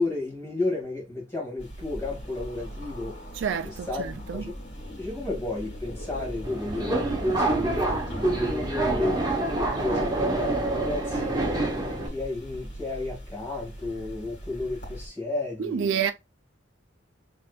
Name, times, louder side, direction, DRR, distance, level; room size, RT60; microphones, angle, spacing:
voice 1, 0.0-3.2 3.6-4.5 5.0-15.9, left 2 dB, 15° left, 2.2 m, -33 dB
sound 1, 1.6-15.1, equal, 60° left, 1.9 m, -40 dB
voice 2, 3.3-4.5 15.6-16.1, right 7 dB, 75° right, 0.3 m, -29 dB
Subway metro underground, 6.4-12.1, right 2 dB, 20° right, 0.9 m, -26 dB
5.8 x 3.3 x 2.4 m
head